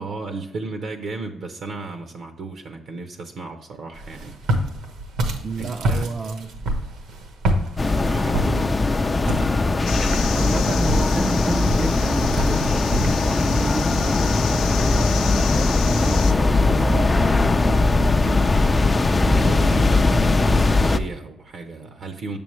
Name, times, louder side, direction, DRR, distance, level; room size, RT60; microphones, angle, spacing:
voice 1, 0.0-4.4 5.6-6.1 8.0-8.7 18.6-18.9 19.3-22.4, right 3 dB, 65° right, 6 dB, 0.7 m, -34 dB
Walk footsteps, 3.9-13.1, right 1 dB, 85° right, 1.1 m, -28 dB
voice 2, 5.4-6.5 8.4-8.7 10.3-17.9, right 4 dB, 40° right, 4 dB, 0.4 m, -31 dB
sound 1, 7.8-21.0, left 3 dB, 25° left, 0.4 m, -19 dB
sound 2, 9.9-16.3, left 9 dB, 90° left, 0.4 m, -32 dB
6.9 x 6.8 x 3.1 m, 0.86 s
cardioid pair, 90°, 0 cm